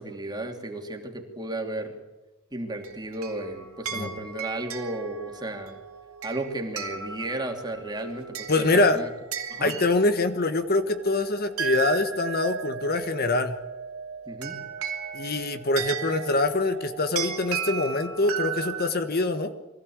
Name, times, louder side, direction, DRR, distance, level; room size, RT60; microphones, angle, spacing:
voice 1, 0.0-2.0 2.5-5.8 6.2-9.1 9.5-9.7 14.3-14.6, right 2 dB, 20° right, 3 dB, 2.8 m, -34 dB
sound 1, 2.8-18.9, right 7 dB, 90° right, 2.8 m, -36 dB
voice 2, 8.5-9.0 9.6-13.6 15.1-19.5, left 2 dB, 45° left, 8 dB, 1.3 m, -24 dB
24.0 x 16.0 x 8.7 m, 1.1 s
head